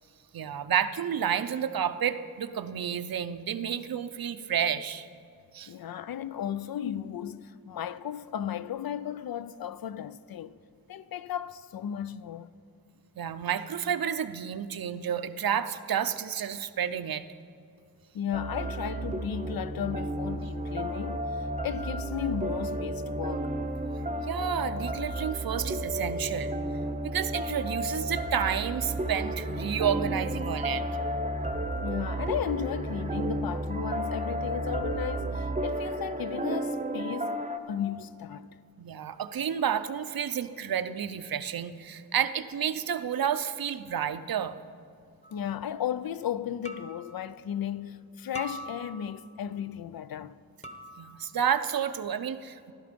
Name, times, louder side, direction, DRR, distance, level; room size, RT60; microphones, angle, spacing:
voice 1, 0.3-5.1 5.5-5.7 13.2-17.3 24.3-26.6 27.0-30.8 38.8-44.6 51.0-52.7, right 8 dB, 70° right, 0.6 m, -30 dB
voice 2, 5.7-10.6 10.9-12.5 18.1-23.5 31.8-37.4 37.7-38.5 45.3-50.4, left 9 dB, 75° left, 0.5 m, -35 dB
sound 1, 18.3-37.6, right 1 dB, 20° right, 0.8 m, -32 dB
sound 2, 45.2-45.5 46.7-47.2 48.3-49.2 50.6-51.3, right 1 dB, 20° left, 1.0 m, -43 dB
15.0 x 12.5 x 5.2 m
wide cardioid pair, 100°, 36 cm